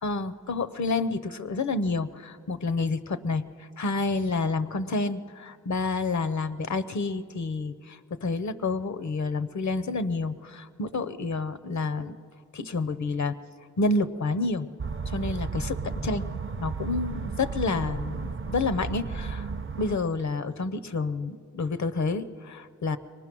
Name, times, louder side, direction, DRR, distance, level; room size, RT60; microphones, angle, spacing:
voice 1, 0.0-12.2 12.5-13.4 13.8-14.7 15.1-19.5 19.8-23.0, left 3 dB, 70° left, 12 dB, 0.7 m, -29 dB
sound 1, 14.8-20.0, right 5 dB, 45° right, 0.6 m, -33 dB
23.5 x 19.0 x 6.1 m, 2.2 s
wide cardioid pair, 85°, 30 cm